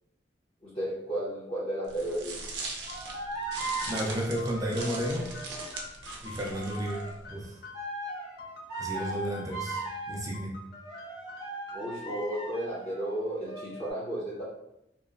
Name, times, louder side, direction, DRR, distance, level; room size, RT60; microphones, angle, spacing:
voice 1, 0.6-2.3 11.7-14.4, right 1 dB, 40° left, -11 dB, 0.8 m, -33 dB
sound 1, 1.9-7.4, right 3 dB, 85° right, 0.5 m, -40 dB
sound 2, 2.8-5.8 6.5-7.3 7.7-10.2 10.7-13.9, right 2 dB, 80° left, 1.1 m, -39 dB
sound 3, 2.9-8.0 8.4-10.0 10.3-12.1, left 3 dB, 60° left, 0.4 m, -48 dB
voice 2, 3.9-5.3 6.2-7.6 8.8-10.5, equal, 20° right, -2 dB, 0.4 m, -32 dB
2.9 x 2.1 x 2.4 m, 0.82 s
head